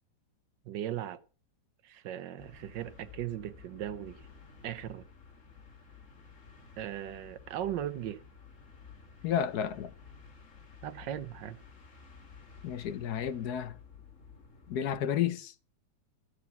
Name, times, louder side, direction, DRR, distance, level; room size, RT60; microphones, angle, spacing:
voice 1, 0.6-1.2 1.8-4.2 4.6-5.1 6.8-8.2 10.8-11.6, right 11 dB, 75° right, 1.5 m, -38 dB
sound 1, 2.4-15.0, left 5 dB, 45° left, 2.2 m, -53 dB
voice 2, 9.2-9.9 12.6-13.8 14.7-15.6, left 9 dB, 65° left, 1.2 m, -32 dB
13.0 x 6.8 x 7.0 m
omnidirectional pair, 2.0 m